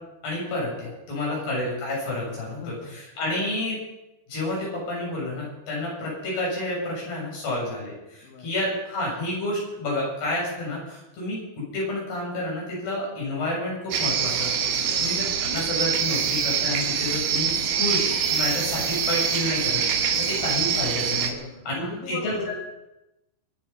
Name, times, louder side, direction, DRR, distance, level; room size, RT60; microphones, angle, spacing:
voice 1, 0.2-3.8 4.3-21.3 21.7-22.5, left 1 dB, 55° left, -4 dB, 9.3 m, -30 dB
voice 2, 2.6-3.0 8.2-8.5 14.8-15.2 21.3-22.6, left 4 dB, 75° left, 1 dB, 4.1 m, -39 dB
sound 1, 13.9-21.3, right 7 dB, 65° right, 2.8 m, -25 dB
24.5 x 9.3 x 5.7 m, 0.94 s
omnidirectional pair, 5.4 m